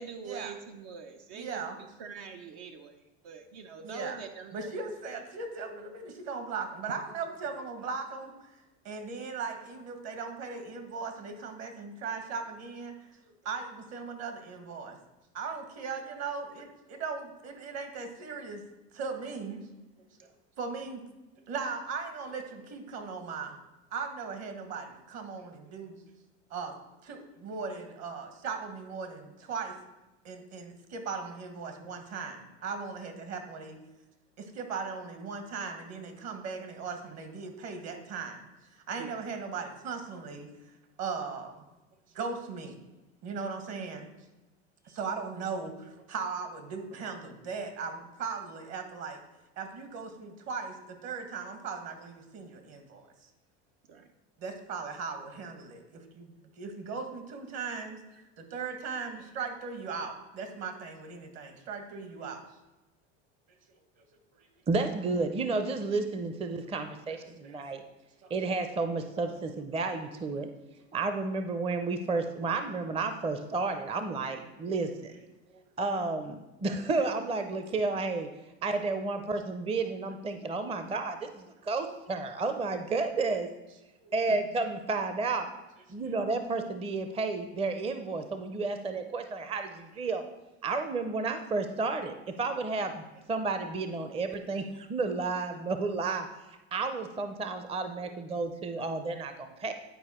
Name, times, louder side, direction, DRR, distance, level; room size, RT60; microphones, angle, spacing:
voice 1, 0.0-1.7 2.0-4.7 39.0-39.2 53.9-54.1 84.3-84.4, right 5 dB, 70° right, 5 dB, 0.8 m, -44 dB
voice 2, 1.3-1.7 3.8-4.2 4.5-8.5 8.8-12.9 13.2-15.0 15.3-18.6 18.9-19.6 20.6-21.0 21.5-23.6 23.9-26.0 26.5-26.7 27.0-29.8 30.2-33.8 34.4-38.5 38.9-40.5 41.0-41.6 42.1-42.8 43.2-44.1 44.8-49.2 49.6-53.1 54.4-58.0 58.4-62.4 64.3-64.5 67.4-67.6 68.2-68.3 75.5-75.6 84.0-84.1, right 5 dB, 55° right, 6 dB, 1.5 m, -38 dB
voice 3, 64.7-67.8 68.3-70.5 70.9-75.1 75.8-78.3 78.6-83.5 84.1-85.5 85.9-90.2 90.6-93.0 93.3-96.3 96.7-99.7, right 3 dB, 20° right, 8 dB, 0.5 m, -31 dB
10.0 x 4.6 x 4.3 m, 1.0 s
supercardioid pair, 105°, 33 cm